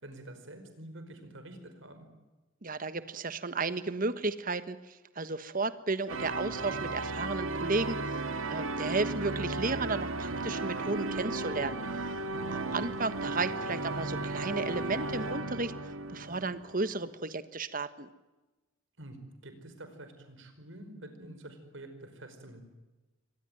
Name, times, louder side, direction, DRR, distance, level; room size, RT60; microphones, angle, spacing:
voice 1, 0.0-2.0 12.3-12.8 19.0-19.2 19.4-22.6, right 1 dB, 70° right, 8 dB, 5.1 m, -47 dB
voice 2, 2.6-8.2 8.5-11.8 12.5-18.1, right 3 dB, 40° right, 13 dB, 1.3 m, -33 dB
sound 1, 6.1-17.1, right 2 dB, 85° right, 1.7 m, -35 dB
24.5 x 19.5 x 9.2 m, 1.1 s
head